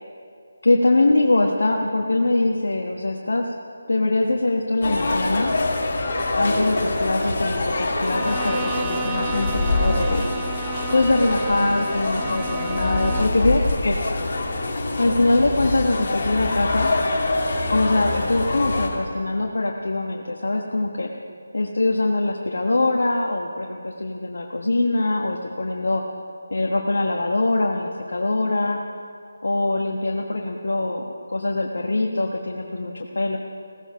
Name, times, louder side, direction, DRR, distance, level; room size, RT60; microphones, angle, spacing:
voice 1, 0.6-3.5 3.9-5.5 6.3-10.3 10.9-14.0 15.0-16.9 17.7-21.1 21.5-26.0 26.5-28.8 29.4-33.4, left 2 dB, 65° left, 1 dB, 1.3 m, -23 dB
sound 1, 4.8-18.9, left 2 dB, 40° left, 3.0 m, -25 dB
Bowed string instrument, 8.0-13.5, right 7 dB, 15° right, 0.5 m, -34 dB
17.0 x 15.0 x 5.6 m, 2.3 s
figure-of-eight pair, 155°, 0 cm